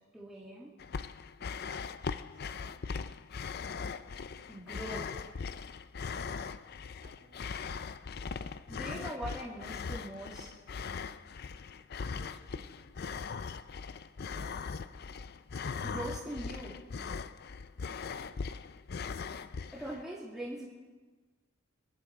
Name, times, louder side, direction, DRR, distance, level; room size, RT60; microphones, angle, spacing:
voice 1, 0.1-0.7 4.5-5.4 8.7-10.5 15.8-16.8 19.7-20.7, right 1 dB, ahead, -7 dB, 2.3 m, -42 dB
sound 1, 0.8-20.0, left 5 dB, 45° left, 0.4 m, -40 dB
voice 2, 2.3-3.0 5.7-5.9 7.0-8.5 10.6-10.7 12.1-12.8 13.9-14.7 18.0-18.7, right 1 dB, 40° right, -2 dB, 4.5 m, -61 dB
25.5 x 11.0 x 4.7 m, 1.3 s
head